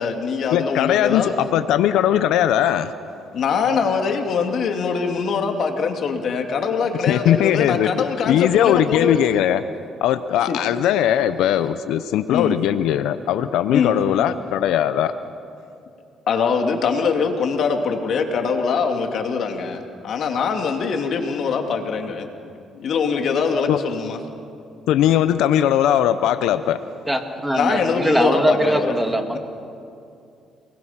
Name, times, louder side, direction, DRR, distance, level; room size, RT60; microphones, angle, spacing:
voice 1, 0.0-1.3 3.3-9.2 10.5-10.6 12.3-12.6 13.7-13.9 16.3-22.3 22.8-24.2 27.5-29.0 29.3-29.4, left 5 dB, 60° left, 4 dB, 2.6 m, -23 dB
voice 2, 0.5-2.9 7.1-9.6 10.0-15.1 23.7-23.8 24.9-26.8, left 11 dB, 85° left, 11 dB, 0.7 m, -19 dB
voice 3, 27.1-29.4, equal, 10° right, 4 dB, 2.3 m, -21 dB
29.5 x 21.0 x 5.9 m, 2.5 s
cardioid pair, 90°, 0 cm